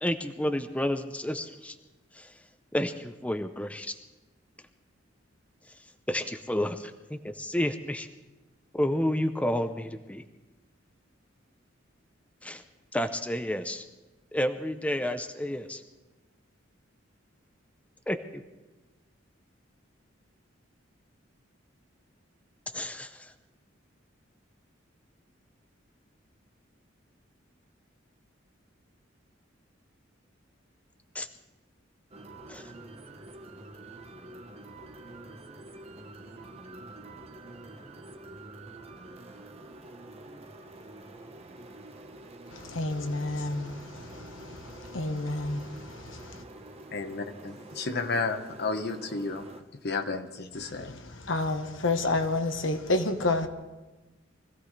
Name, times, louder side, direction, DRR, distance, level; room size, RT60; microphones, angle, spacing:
voice 1, 0.0-1.7 2.1-2.3 2.7-3.9 6.1-8.1 8.7-10.2 12.4-12.6 12.9-13.8 14.3-15.8 18.1-18.4 22.7-23.3 31.1-31.3 32.5-32.7, left 1 dB, 5° left, 0.6 m, -30 dB
sound 1, 32.1-49.6, right 2 dB, 35° right, 1.2 m, -47 dB
voice 2, 42.5-46.4 50.6-53.5, left 2 dB, 75° left, 1.3 m, -30 dB
voice 3, 46.9-51.0, left 3 dB, 55° left, 1.2 m, -32 dB
24.5 x 15.5 x 3.3 m
head